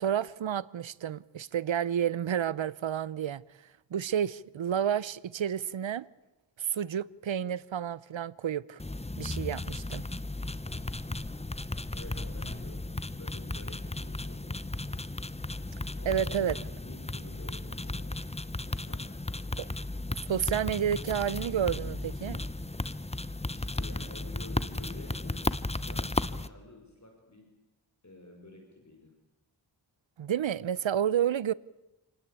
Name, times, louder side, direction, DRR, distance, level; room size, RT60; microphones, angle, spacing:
voice 1, 0.0-3.4 3.9-6.1 6.6-8.8 9.2-10.0 16.1-16.6 19.6-19.7 20.3-22.4 30.2-31.5, right 9 dB, 75° right, 0.8 m, -30 dB
sound 1, 8.8-26.5, left 2 dB, 15° left, 1.0 m, -35 dB
voice 2, 11.9-14.6 16.0-16.6 16.8-18.3 18.7-19.2 23.5-27.5 28.0-29.1, left 2 dB, 35° left, 5.3 m, -50 dB
28.5 x 19.0 x 8.4 m
cardioid pair, 50°, 46 cm